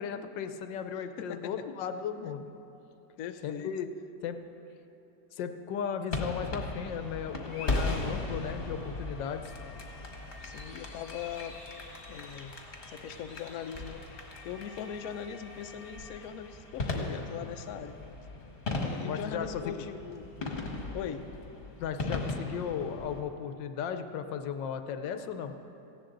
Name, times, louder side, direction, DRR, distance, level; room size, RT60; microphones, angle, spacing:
voice 1, 0.0-2.5 3.4-3.9 4.2-4.4 5.3-9.5 19.0-19.7 21.8-25.5, left 7 dB, 85° left, 8 dB, 1.4 m, -36 dB
voice 2, 1.2-1.7 3.2-3.7 10.4-11.6 12.1-12.5 12.9-14.0 14.4-18.0 18.8-20.3 20.9-21.3, left 8 dB, 65° left, 7 dB, 1.0 m, -40 dB
sound 1, 6.1-23.2, left 2 dB, 35° left, 1.6 m, -38 dB
18.0 x 16.0 x 3.9 m, 3.0 s
omnidirectional pair, 1.9 m